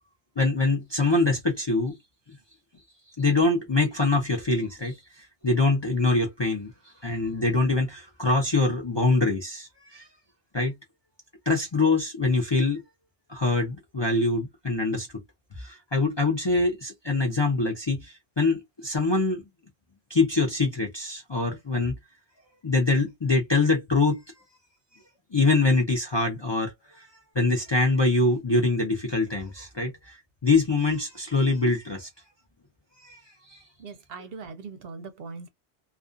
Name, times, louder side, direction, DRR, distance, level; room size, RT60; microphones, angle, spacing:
voice 1, 0.4-2.0 3.2-6.7 7.0-10.0 10.5-10.7 11.5-12.8 13.3-15.1 15.6-19.4 20.1-21.9 22.6-24.2 25.3-27.1 27.4-30.2 30.4-32.1 33.0-33.2 33.5-33.6, left 3 dB, 35° left, 0.4 m, -24 dB
voice 2, 33.8-35.5, right 4 dB, 65° right, 0.7 m, -40 dB
2.4 x 2.3 x 2.4 m
omnidirectional pair, 1.1 m